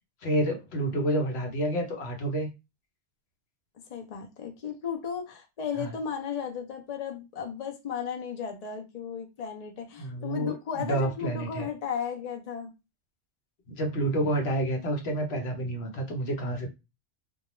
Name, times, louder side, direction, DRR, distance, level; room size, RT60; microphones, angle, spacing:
voice 1, 0.2-2.5 5.8-5.9 10.0-11.7 13.7-16.7, right 1 dB, 65° left, 1.0 m, -29 dB
voice 2, 3.9-12.7, left 7 dB, 50° left, 0.5 m, -35 dB
2.2 x 2.2 x 2.9 m
omnidirectional pair, 1.2 m